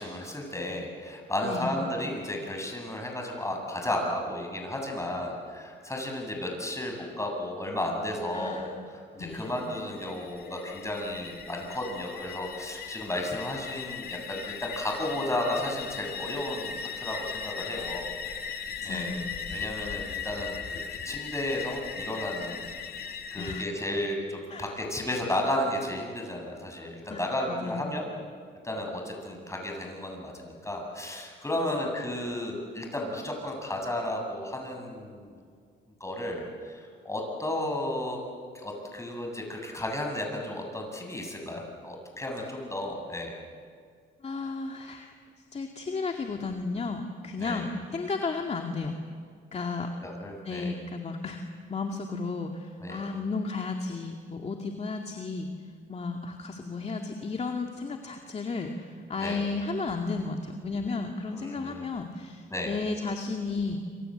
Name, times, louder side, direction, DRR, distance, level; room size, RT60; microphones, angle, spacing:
voice 1, 0.0-19.2 19.5-20.8 21.0-22.7 23.3-28.1 28.6-35.4 36.0-38.2 38.6-43.3 47.4-47.6 50.0-50.7 52.8-53.0 59.2-59.4 61.3-61.9 62.5-62.7, left 1 dB, 15° left, 1 dB, 8.0 m, -33 dB
voice 2, 1.4-1.8 8.3-8.7 9.2-9.5 18.8-19.3 23.4-23.7 24.5-24.8 27.1-27.8 44.2-45.1 45.5-49.0 49.5-49.9 50.4-51.4 51.7-55.5 55.9-63.8, left 4 dB, 35° left, 3 dB, 2.2 m, -33 dB
sound 1, 9.3-23.7, left 6 dB, 50° left, 2.2 m, -38 dB
27.5 x 26.5 x 8.0 m, 2.1 s
cardioid pair, 90°, 20 cm